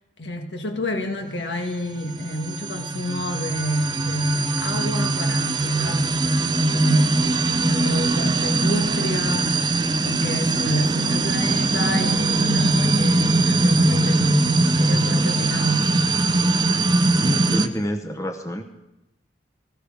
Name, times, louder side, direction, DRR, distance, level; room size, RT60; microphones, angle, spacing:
voice 1, 0.2-6.2 6.7-9.6 10.0-15.9, equal, 75° left, 4 dB, 1.9 m, -28 dB
sound 1, 2.0-17.7, right 2 dB, 25° right, 0.6 m, -21 dB
voice 2, 17.1-18.6, left 1 dB, 15° left, 5 dB, 0.9 m, -28 dB
19.0 x 14.5 x 5.1 m, 0.95 s
head